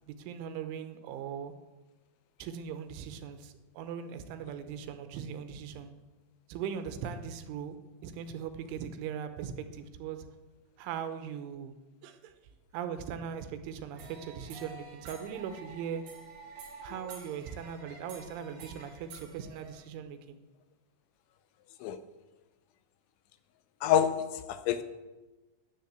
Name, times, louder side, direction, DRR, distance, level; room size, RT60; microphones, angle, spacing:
voice 1, 0.0-1.5 2.4-5.9 6.5-7.8 8.0-10.3 10.8-11.7 12.0-12.3 12.7-16.0 16.8-20.4, right 8 dB, 80° right, 3.3 m, -39 dB
sound 1, 13.9-19.9, right 3 dB, 55° right, 3.4 m, -49 dB
voice 2, 23.8-24.8, left 10 dB, 80° left, 2.9 m, -27 dB
10.5 x 9.8 x 8.1 m
omnidirectional pair, 5.6 m